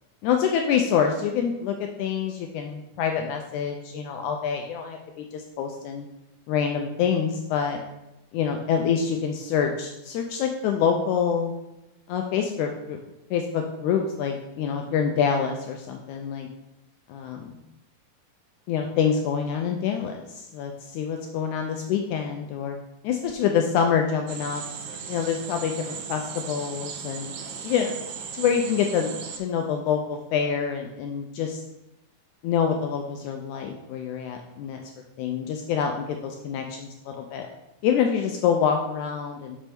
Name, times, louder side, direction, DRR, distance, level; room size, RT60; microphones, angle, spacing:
voice 1, 0.2-6.1 6.5-7.8 8.3-11.5 12.1-13.0 13.3-16.5 17.1-17.6 18.7-22.8 23.0-24.6 25.1-27.3 27.6-27.9 28.3-31.6 32.4-34.8 35.2-37.5 37.8-39.6, left 7 dB, 80° left, 3 dB, 1.8 m, -26 dB
sound 1, 24.3-29.4, right 6 dB, 85° right, 2.3 m, -37 dB
6.1 x 5.5 x 3.4 m, 0.95 s
omnidirectional pair, 3.8 m